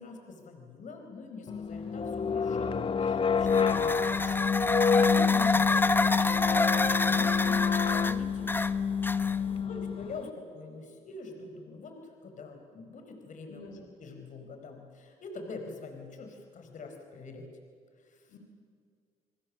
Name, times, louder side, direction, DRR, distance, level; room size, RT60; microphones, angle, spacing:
voice 1, 0.0-2.7 3.0-7.6 8.0-8.5 9.3-13.7 14.0-17.5 18.0-18.3, left 3 dB, 55° left, 4 dB, 4.4 m, -45 dB
sound 1, 1.5-10.2, left 6 dB, 35° left, 1.0 m, -27 dB
sound 2, 3.4-9.6, left 2 dB, 15° left, 1.0 m, -29 dB
voice 2, 9.4-9.8 13.5-13.9 18.3-18.4, left 2 dB, 80° left, 2 dB, 4.5 m, -51 dB
29.5 x 20.0 x 7.3 m, 2.1 s
supercardioid pair, 75°, 15 cm